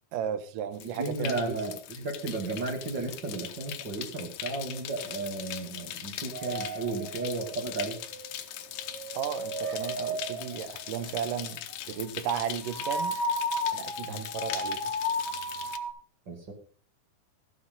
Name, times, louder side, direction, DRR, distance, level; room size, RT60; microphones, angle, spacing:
voice 1, 0.1-1.6 9.1-11.6 11.9-13.2 13.7-14.9, right 9 dB, 65° right, 11 dB, 2.5 m, -34 dB
sound 1, 0.7-15.8, left 12 dB, 80° left, 2.8 m, -40 dB
voice 2, 1.0-8.0 14.0-14.3 16.3-16.5, right 3 dB, 30° right, 3 dB, 2.7 m, -34 dB
sound 2, 6.3-8.2 8.8-10.8 12.6-15.9, equal, 5° left, 3.1 m, -34 dB
14.5 x 7.3 x 5.6 m, 0.40 s
omnidirectional pair, 4.5 m